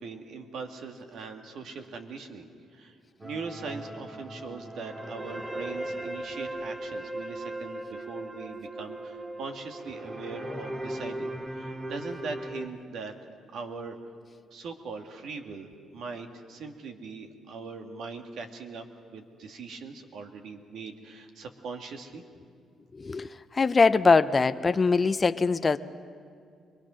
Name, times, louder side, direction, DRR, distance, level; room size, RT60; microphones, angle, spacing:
voice 1, 0.0-2.5 2.7-2.9 3.2-13.1 13.5-14.0 14.5-18.9 19.1-22.2, right 4 dB, 75° right, 4 dB, 1.9 m, -40 dB
sound 1, 3.2-12.7, right 1 dB, 15° right, 1.3 m, -38 dB
voice 2, 22.9-25.8, left 4 dB, 30° left, 11 dB, 0.6 m, -22 dB
25.0 x 21.0 x 6.3 m, 2.3 s
cardioid pair, 90°, 0 cm